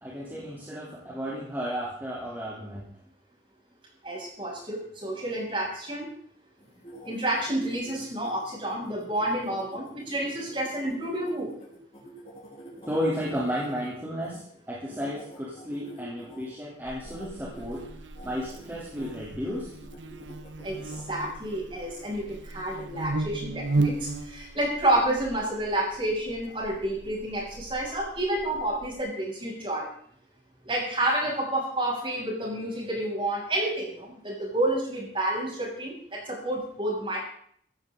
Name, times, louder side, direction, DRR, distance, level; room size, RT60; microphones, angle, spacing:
voice 1, 0.0-2.8 12.9-17.9 18.2-19.7, equal, 10° right, -6 dB, 3.4 m, -33 dB
voice 2, 4.0-6.1 7.0-11.5 20.6-29.9 30.6-37.2, right 1 dB, 30° right, -3 dB, 7.5 m, -29 dB
sound 1, 6.6-14.4 14.9-16.5 17.0-17.3 17.5-17.8 18.1-19.1 19.6-21.3, right 1 dB, 30° left, 5.9 m, -46 dB
Buzz, 16.8-29.0, right 2 dB, 80° right, 1.1 m, -36 dB
16.5 x 16.0 x 4.0 m, 0.62 s
head